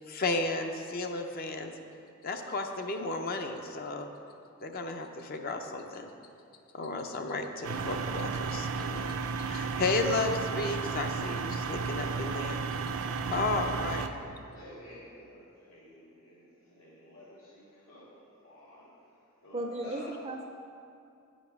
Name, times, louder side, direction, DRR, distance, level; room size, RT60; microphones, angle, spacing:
voice 1, 0.1-1.7 2.2-4.1 4.6-6.1 6.7-9.1 9.4-12.6 13.3-14.1, left 3 dB, 45° left, 5 dB, 0.5 m, -33 dB
sound 1, 7.6-14.1, right 4 dB, 85° right, 0.5 m, -33 dB
voice 2, 14.5-20.3, left 1 dB, 80° left, -7 dB, 2.2 m, -51 dB
voice 3, 19.5-20.4, right 1 dB, 30° right, 2 dB, 0.4 m, -35 dB
8.5 x 5.2 x 5.9 m, 2.5 s
head